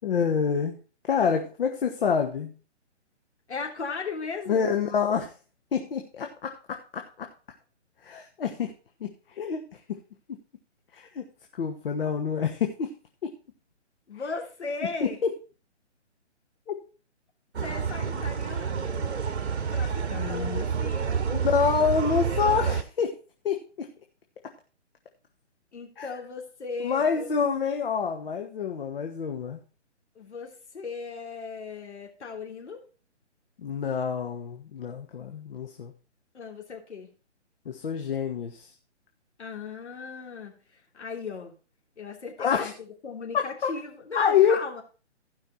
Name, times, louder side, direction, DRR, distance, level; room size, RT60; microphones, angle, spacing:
voice 1, 0.0-0.8 1.1-2.5 4.5-5.4 5.7-7.3 8.0-8.7 9.0-9.6 10.9-11.2 11.6-12.9 13.2-13.3 15.0-15.3 16.7-16.8 18.1-18.2 20.1-20.6 21.3-23.1 23.4-23.9 26.0-26.1 26.8-29.6 33.6-35.9 37.6-38.7 42.4-42.7 43.3-43.7 44.1-44.8, left 6 dB, 50° left, 4 dB, 1.3 m, -27 dB
voice 2, 3.5-4.7 14.1-15.2 17.6-19.1 19.7-21.3 22.2-22.8 25.7-27.3 30.1-32.8 36.3-37.1 39.4-41.5 42.0-44.8, left 4 dB, 70° left, 1 dB, 3.2 m, -37 dB
sound 1, 17.5-22.8, right 6 dB, 65° right, 1.2 m, -29 dB
15.5 x 5.6 x 4.3 m, 0.35 s
figure-of-eight pair, 145°, 36 cm